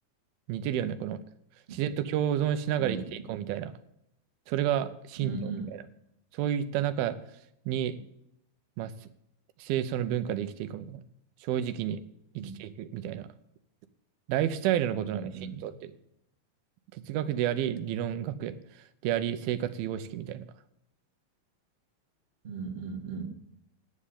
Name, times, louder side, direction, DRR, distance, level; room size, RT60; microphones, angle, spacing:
voice 1, 0.5-1.2 1.7-3.7 4.5-5.8 6.3-7.2 7.7-8.0 8.8-8.9 9.6-11.0 11.4-12.0 12.4-13.3 14.3-15.9 16.9-18.6 19.0-20.4, right 10 dB, 85° right, 12 dB, 2.6 m, -30 dB
voice 2, 5.2-5.7 12.4-12.5 15.0-15.6 22.4-23.3, right 5 dB, 30° right, 1 dB, 1.2 m, -36 dB
10.5 x 7.5 x 8.4 m, 0.78 s
omnidirectional pair, 4.2 m